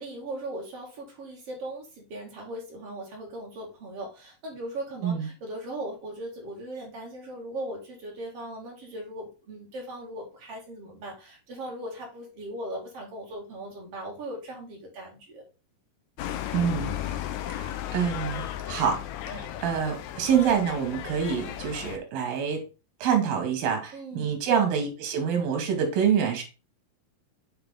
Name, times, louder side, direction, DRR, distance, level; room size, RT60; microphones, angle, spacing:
voice 1, 0.0-15.4 23.9-24.3, right 1 dB, 45° right, -1 dB, 2.7 m, -38 dB
sound 1, 16.2-22.0, left 11 dB, 85° left, 1.6 m, -35 dB
voice 2, 16.5-17.0 17.5-19.0 19.3-22.6 23.0-26.4, right 7 dB, 85° right, 4 dB, 3.4 m, -26 dB
7.9 x 3.9 x 3.8 m, 0.30 s
omnidirectional pair, 4.1 m